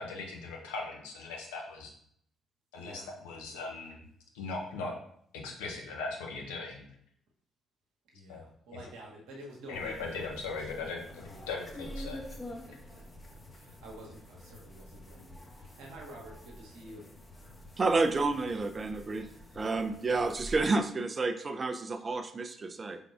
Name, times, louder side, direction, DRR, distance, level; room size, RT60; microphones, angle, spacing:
voice 1, 0.0-1.9 2.7-4.0 4.3-4.9 5.3-6.9 8.3-8.4 9.7-12.2, left 3 dB, 75° left, 0 dB, 0.7 m, -39 dB
voice 2, 2.7-3.2 8.1-12.0 12.6-13.1 13.5-17.1, right 1 dB, 65° right, -2 dB, 0.9 m, -50 dB
sound 1, 9.7-20.7, equal, 25° left, 0.8 m, -47 dB
voice 3, 17.8-19.3 19.5-23.0, right 3 dB, 35° right, 9 dB, 0.4 m, -30 dB
4.6 x 3.5 x 2.4 m, 0.66 s
figure-of-eight pair, 45°, 0 cm